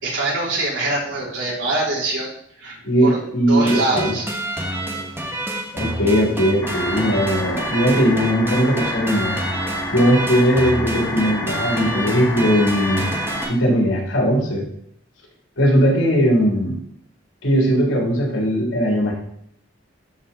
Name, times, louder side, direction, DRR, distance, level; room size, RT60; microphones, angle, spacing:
voice 1, 0.0-2.3 2.6-2.8 3.0-3.2 3.5-4.3, right 2 dB, 75° right, -4 dB, 3.8 m, -23 dB
voice 2, 2.8-4.2 5.7-9.4 9.9-13.1 13.5-14.6 15.6-16.8 17.4-19.1, equal, 85° left, -2 dB, 3.6 m, -19 dB
sound 1, 3.6-13.5, right 1 dB, 15° right, 1.3 m, -28 dB
sound 2, 6.6-13.4, left 1 dB, 15° left, 3.0 m, -29 dB
12.5 x 5.1 x 4.3 m, 0.69 s
head